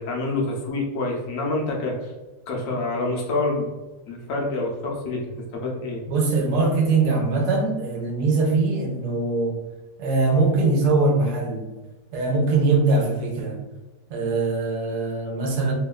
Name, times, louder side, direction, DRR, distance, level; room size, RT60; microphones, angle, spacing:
voice 1, 0.0-2.0 2.5-3.7 4.1-6.0, left 2 dB, 65° left, -1 dB, 0.9 m, -27 dB
voice 2, 6.1-9.6 10.0-11.7 12.1-13.6 14.1-15.7, right 3 dB, 80° right, 2 dB, 1.1 m, -22 dB
2.9 x 2.2 x 2.3 m, 1.1 s
omnidirectional pair, 1.7 m